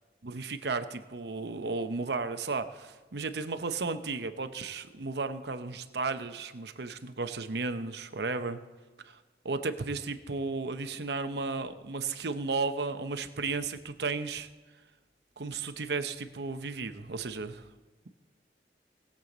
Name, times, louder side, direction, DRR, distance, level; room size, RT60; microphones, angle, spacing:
voice 1, 0.2-8.6 9.0-9.2 9.4-14.5 15.4-17.7, right 4 dB, 75° right, 9 dB, 0.8 m, -34 dB
20.5 x 7.6 x 4.0 m, 1.3 s
head